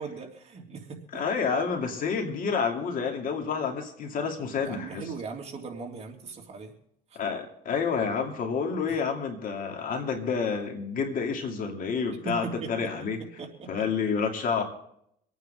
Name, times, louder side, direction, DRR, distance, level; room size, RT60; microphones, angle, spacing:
voice 1, 0.0-1.2 4.6-6.7 12.2-12.9 13.2-13.8, right 4 dB, 40° right, 1 dB, 3.2 m, -39 dB
voice 2, 1.1-5.0 7.1-13.2 13.7-14.6, left 5 dB, 55° left, 3 dB, 2.9 m, -29 dB
26.0 x 9.2 x 3.9 m, 0.71 s
cardioid pair, 110°, 17 cm